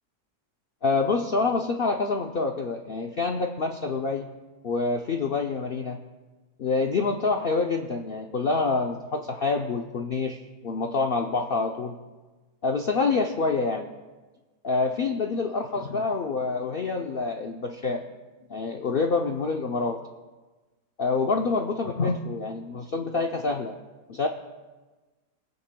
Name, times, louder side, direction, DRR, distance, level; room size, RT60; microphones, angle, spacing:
voice 1, 0.8-4.3 4.6-6.0 6.6-12.0 12.6-13.9 14.6-18.0 18.5-20.0 21.0-23.7 24.1-24.3, left 4 dB, 70° left, 3 dB, 0.5 m, -27 dB
22.5 x 9.3 x 2.2 m, 1.3 s
omnidirectional pair, 1.7 m